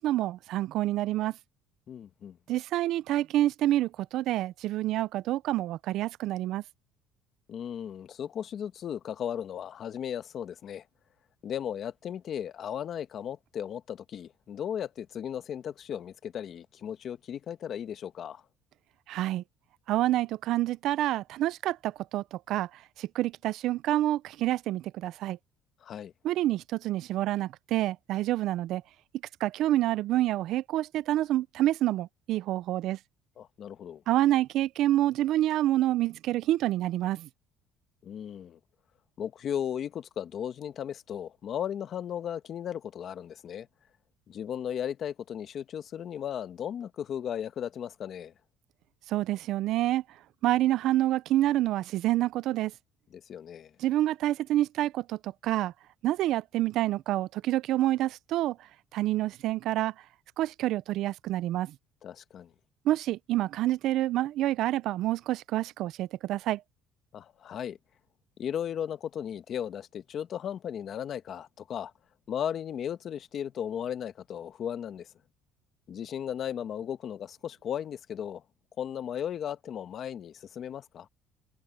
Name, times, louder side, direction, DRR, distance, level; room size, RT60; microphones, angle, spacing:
voice 1, 0.0-1.3 2.5-6.6 19.1-19.4 19.9-22.7 23.0-25.4 26.2-28.8 29.4-33.0 34.1-37.3 49.1-50.0 50.4-52.7 53.8-55.7 56.0-58.6 58.9-59.9 60.4-61.7 62.9-66.6, right 14 dB, 65° right, 0.4 m, -27 dB
voice 2, 1.9-2.4 7.5-10.8 11.4-18.4 25.8-26.1 33.4-34.0 38.0-38.6 39.2-43.7 44.3-48.3 53.1-53.7 62.0-62.5 67.1-67.8 68.4-71.9 72.3-75.1 75.9-78.4 78.8-81.1, left 9 dB, 45° left, 1.3 m, -36 dB
cardioid pair, 125°, 0 cm